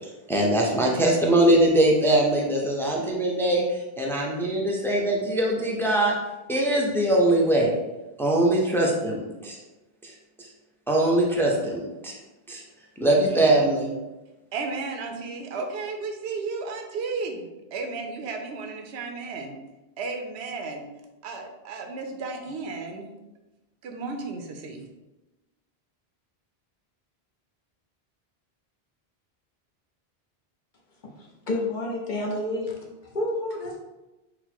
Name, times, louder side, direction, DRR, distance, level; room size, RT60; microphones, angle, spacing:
voice 1, 0.0-6.2 6.5-7.7 8.2-9.6 10.0-10.1 10.4-10.5 10.9-12.2 12.5-12.6 13.0-13.9, right 1 dB, 5° left, -2 dB, 0.4 m, -22 dB
voice 2, 14.5-19.6 20.0-20.8 21.2-23.1 23.8-24.9, right 4 dB, 90° right, 4 dB, 0.9 m, -33 dB
voice 3, 31.2-32.8 33.1-33.8, left 1 dB, 55° left, -1 dB, 0.8 m, -29 dB
4.2 x 2.2 x 4.3 m, 1.0 s
omnidirectional pair, 1.1 m